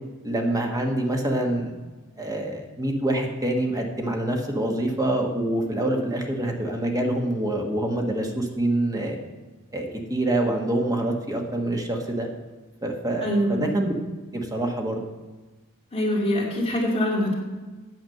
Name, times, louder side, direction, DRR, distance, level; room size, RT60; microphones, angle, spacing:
voice 1, 0.2-1.7 2.2-9.2 9.7-12.3 12.8-13.9 14.3-15.0, right 1 dB, 15° right, 2 dB, 1.3 m, -26 dB
voice 2, 13.2-13.6 15.9-17.3, equal, 25° left, -3 dB, 2.7 m, -24 dB
9.2 x 7.2 x 6.6 m, 1.2 s
head